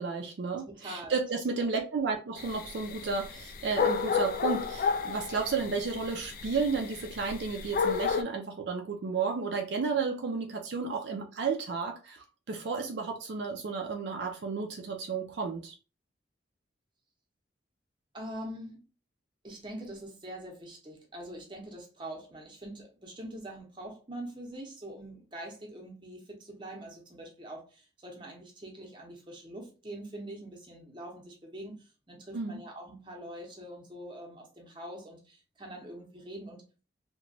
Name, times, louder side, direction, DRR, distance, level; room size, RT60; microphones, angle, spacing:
voice 1, 0.0-15.7 32.3-32.6, right 4 dB, 70° right, 0.4 m, -32 dB
voice 2, 0.8-1.2 18.1-18.8 19.4-36.6, right 1 dB, 25° right, 0.7 m, -44 dB
sound 1, 2.4-8.2, left 5 dB, 50° left, 0.3 m, -32 dB
2.9 x 2.2 x 2.6 m
head